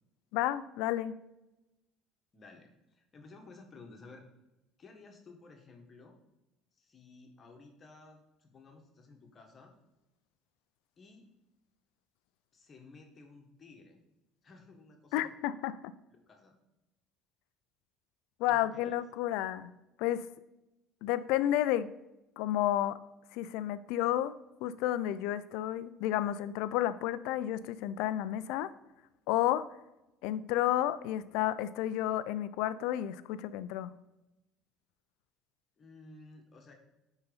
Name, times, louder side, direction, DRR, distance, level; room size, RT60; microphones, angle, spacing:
voice 1, 0.3-1.1 15.1-15.9 18.4-19.7 20.0-20.3 21.0-21.9 22.4-23.0 23.3-24.3 24.6-28.7 29.3-29.7 30.2-33.9, left 12 dB, 75° left, 15 dB, 0.4 m, -31 dB
voice 2, 2.3-4.2 4.8-6.2 6.7-9.7 11.0-11.3 12.5-14.0 14.4-15.3 16.1-16.5 18.5-19.0 35.8-36.7, left 3 dB, 40° left, 3 dB, 1.4 m, -55 dB
9.5 x 4.0 x 4.0 m, 0.95 s
supercardioid pair, 80°, 0 cm